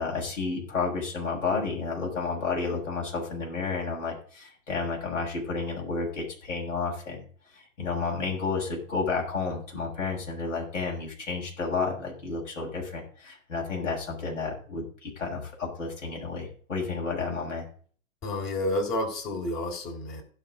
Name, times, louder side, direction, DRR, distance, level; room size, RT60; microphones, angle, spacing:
voice 1, 0.0-7.2 7.5-17.6, left 4 dB, 65° left, -2 dB, 6.7 m, -31 dB
voice 2, 18.2-20.2, left 1 dB, 30° left, 1 dB, 3.6 m, -30 dB
16.0 x 5.9 x 5.1 m, 0.43 s
figure-of-eight pair, 115°, 39 cm